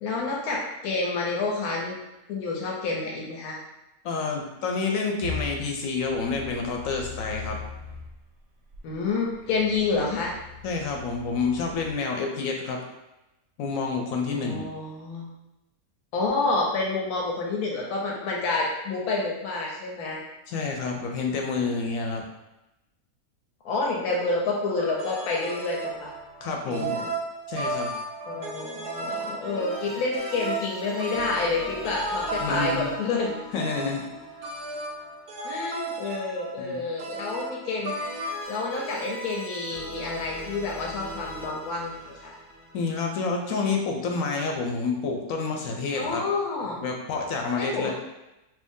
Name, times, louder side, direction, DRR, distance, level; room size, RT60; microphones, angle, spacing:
voice 1, 0.0-1.9 2.3-3.6 8.8-10.3 14.3-15.3 16.1-20.2 23.6-26.1 26.7-27.1 28.3-33.3 35.4-38.0 38.5-42.3 45.9-46.8 47.6-47.9, left 3 dB, 85° left, -2 dB, 1.1 m, -29 dB
voice 2, 4.0-7.6 10.6-12.8 13.6-14.6 20.5-22.2 26.4-26.9 27.5-27.9 29.1-29.3 32.4-32.9 33.5-34.0 36.6-36.8 42.7-46.2 46.8-47.9, left 4 dB, 70° left, 2 dB, 0.9 m, -28 dB
sound 1, 5.2-8.1 8.7-11.9, left 4 dB, 60° right, 0.8 m, -40 dB
sound 2, 24.8-38.4, right 2 dB, 80° right, 0.5 m, -34 dB
sound 3, 25.9-26.8 29.4-35.4 38.0-43.6, left 1 dB, 15° left, 0.5 m, -41 dB
3.1 x 2.6 x 3.5 m, 0.96 s
omnidirectional pair, 1.6 m